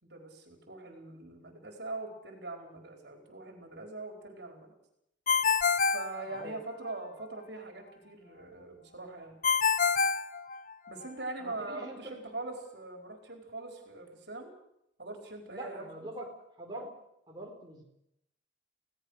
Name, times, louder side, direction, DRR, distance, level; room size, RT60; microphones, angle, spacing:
voice 1, 0.0-4.7 5.9-9.4 10.9-14.5 15.0-16.1, right 2 dB, 60° right, 3 dB, 4.6 m, -42 dB
Ringtone, 5.3-6.9 9.4-11.1, left 5 dB, 45° left, 0.8 m, -27 dB
voice 2, 6.3-6.6 11.4-12.2 15.5-16.9 17.3-17.8, right 1 dB, 20° right, -1 dB, 4.5 m, -44 dB
27.5 x 18.0 x 6.5 m, 0.79 s
head